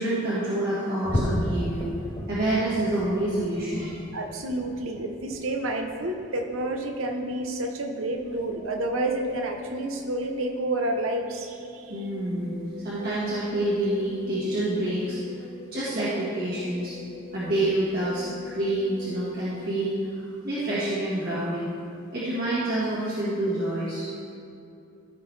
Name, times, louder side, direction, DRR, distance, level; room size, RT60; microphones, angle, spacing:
voice 1, 0.0-1.9 2.3-4.0 11.9-15.2 15.7-16.9 17.3-18.3 18.5-21.7 22.1-24.1, right 1 dB, 45° right, -10 dB, 1.6 m, -27 dB
sound 1, 1.0-7.7 8.1-8.4 8.8-8.9 9.5-9.6, left 1 dB, 25° left, 0.6 m, -35 dB
voice 2, 4.1-12.0, right 1 dB, 75° right, 4 dB, 0.9 m, -29 dB
sound 2, 8.0-20.1, left 3 dB, 80° left, 1.5 m, -44 dB
14.5 x 5.9 x 3.3 m, 2.6 s
head